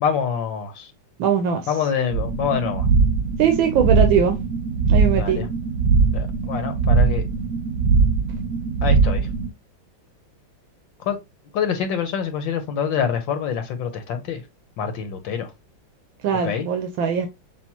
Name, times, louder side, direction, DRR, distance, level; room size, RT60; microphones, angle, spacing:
voice 1, 0.0-0.9 1.7-2.9 5.1-5.4 6.1-7.2 8.8-9.3 11.0-11.2 11.5-14.4 14.8-15.5 16.4-16.7, left 7 dB, 70° left, 1.6 m, -25 dB
voice 2, 1.2-1.7 3.4-4.4 4.9-5.4 16.2-17.3, right 7 dB, 85° right, 1.6 m, -20 dB
sound 1, 2.1-9.5, right 4 dB, 60° right, 0.9 m, -20 dB
7.0 x 2.5 x 2.9 m
omnidirectional pair, 2.1 m